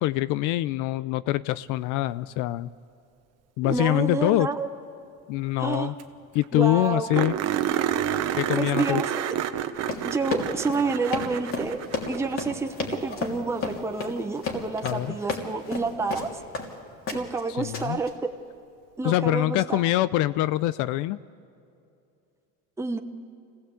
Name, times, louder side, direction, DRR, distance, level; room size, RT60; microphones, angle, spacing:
voice 1, 0.0-2.7 3.6-4.5 5.3-5.9 6.3-7.4 8.4-9.0 14.8-15.2 17.6-18.0 19.0-21.2, left 16 dB, 65° left, 17 dB, 0.5 m, -24 dB
voice 2, 3.6-4.7 5.6-5.9 6.5-7.3 8.5-9.2 10.0-11.8 12.1-16.3 17.1-18.3 19.0-19.8 22.8-23.0, right 4 dB, 10° right, 5 dB, 1.0 m, -29 dB
sound 1, 5.7-5.8 6.0-6.1 6.4-6.5 7.1-12.5 14.9-15.0 17.8-17.9, right 10 dB, 50° right, 1.2 m, -29 dB
Run, 9.8-16.7 17.1-17.4 17.7-18.1, left 4 dB, 40° left, 3.2 m, -32 dB
25.5 x 17.0 x 8.4 m, 2.6 s
cardioid pair, 125°, 33 cm